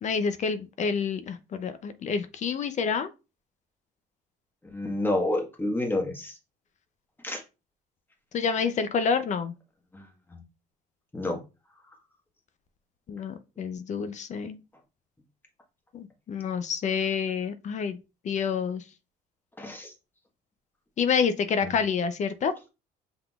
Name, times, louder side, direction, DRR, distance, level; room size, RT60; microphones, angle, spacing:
voice 1, 0.0-3.1 8.3-9.5 13.1-14.6 15.9-18.0 18.2-18.8 21.0-22.5, left 6 dB, 45° left, 0.5 m, -28 dB
voice 2, 4.7-6.4 7.2-7.4 9.9-10.4 11.1-11.4 19.6-19.9 21.6-21.7, left 1 dB, 10° left, 1.3 m, -29 dB
5.8 x 3.6 x 2.3 m
cardioid pair, 110°, 17 cm